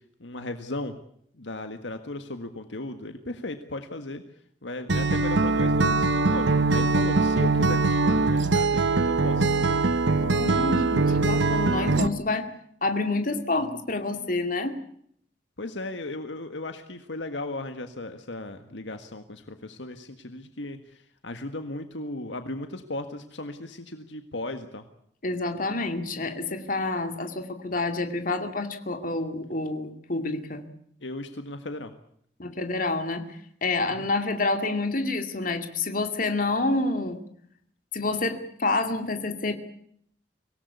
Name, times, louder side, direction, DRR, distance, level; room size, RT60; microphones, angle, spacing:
voice 1, 0.2-0.9 1.4-4.2 4.6-9.8 15.6-24.8 31.0-31.9 34.0-34.1, left 2 dB, 85° left, 7 dB, 1.7 m, -36 dB
Acoustic guitar, 4.9-12.1, right 3 dB, 80° right, 1.0 m, -22 dB
voice 2, 10.2-12.5 12.8-14.8 25.2-30.6 32.4-33.2 33.6-37.2 37.9-39.5, left 2 dB, 45° left, 6 dB, 2.4 m, -28 dB
24.5 x 18.0 x 8.4 m, 0.68 s
head